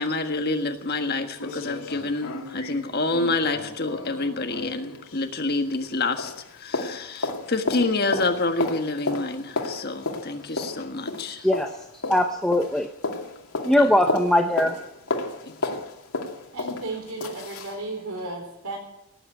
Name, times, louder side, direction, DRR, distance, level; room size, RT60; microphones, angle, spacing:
voice 1, 0.0-11.5 13.7-13.9 15.4-15.8, left 2 dB, 45° left, 6 dB, 1.5 m, -28 dB
sound 1, 0.5-0.6 0.9-1.0 1.4-5.9 6.2-17.8 18.2-18.3, left 3 dB, 85° left, 2.4 m, -33 dB
voice 2, 11.4-11.7 12.1-12.9 13.6-14.7, left 1 dB, ahead, 4 dB, 0.7 m, -20 dB
voice 3, 16.5-18.8, right 2 dB, 80° right, 2 dB, 4.2 m, -34 dB
18.0 x 8.8 x 9.1 m, 0.84 s
head